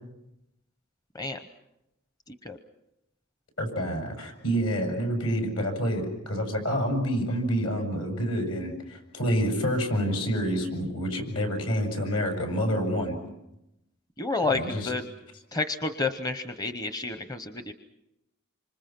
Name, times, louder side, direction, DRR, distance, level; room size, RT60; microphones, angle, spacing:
voice 1, 2.3-2.6 14.2-15.0 15.5-17.7, left 3 dB, 15° left, 8 dB, 0.8 m, -30 dB
voice 2, 3.6-13.2 14.5-14.9, equal, 70° left, 5 dB, 7.2 m, -28 dB
27.5 x 26.0 x 6.0 m, 0.87 s
head